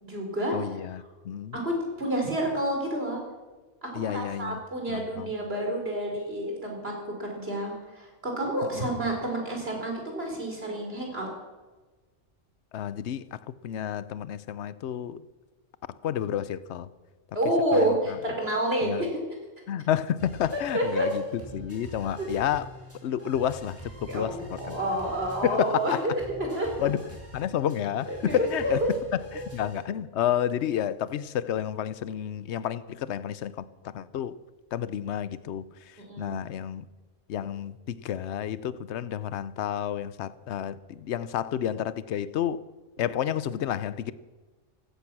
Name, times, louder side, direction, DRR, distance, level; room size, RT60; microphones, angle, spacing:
voice 1, 0.0-0.5 1.5-3.2 3.8-11.3 17.3-19.2 20.5-21.1 22.2-22.3 24.1-26.1 26.4-26.7 28.1-28.9 36.0-36.4, right 1 dB, 50° right, 4.5 m, -29 dB
voice 2, 0.5-1.6 3.9-4.6 4.9-5.3 8.7-8.8 12.7-15.2 15.9-16.9 17.7-17.9 18.8-19.0 19.7-21.2 21.5-22.7 23.0-24.8 25.4-26.0 26.8-27.0 27.3-28.9 29.3-34.4 34.7-36.9 37.3-42.6 43.0-44.1, left 10 dB, 65° left, 0.9 m, -30 dB
sound 1, 20.2-29.8, right 1 dB, 10° right, 4.9 m, -46 dB
16.5 x 14.0 x 6.1 m
omnidirectional pair, 1.3 m